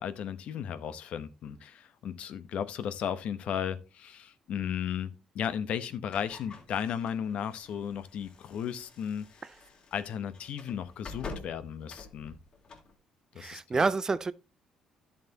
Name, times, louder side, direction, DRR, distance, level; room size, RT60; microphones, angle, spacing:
voice 1, 0.0-9.4 9.9-12.4 13.3-13.8, left 8 dB, 65° left, 1.0 m, -35 dB
sound 1, 6.1-12.9, left 3 dB, 50° left, 3.2 m, -48 dB
voice 2, 13.4-14.3, right 4 dB, 25° right, 0.5 m, -28 dB
11.0 x 7.2 x 2.9 m
cardioid pair, 100°, 2 cm